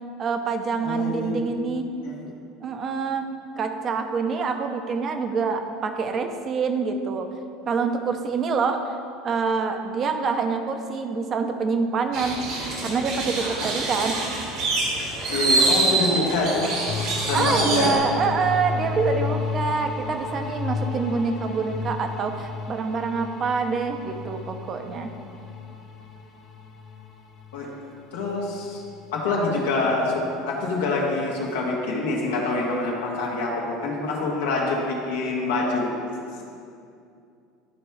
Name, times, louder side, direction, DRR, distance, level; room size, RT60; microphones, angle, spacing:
voice 1, 0.2-1.9 2.6-3.2 3.6-7.3 7.7-9.0 9.2-12.4 12.8-14.2 17.3-25.1, right 5 dB, 40° right, 6 dB, 0.7 m, -26 dB
voice 2, 0.8-1.4 2.0-2.2 15.3-16.7 17.0-17.9 27.5-27.7 28.1-28.8 29.1-35.9 36.3-36.4, left 2 dB, 90° left, -3 dB, 1.7 m, -26 dB
sound 1, 12.1-18.0, right 3 dB, 65° right, 1.8 m, -25 dB
sound 2, 16.9-29.4, left 4 dB, 50° left, 1.1 m, -33 dB
12.0 x 4.5 x 3.4 m, 2.5 s
supercardioid pair, 105°, 0 cm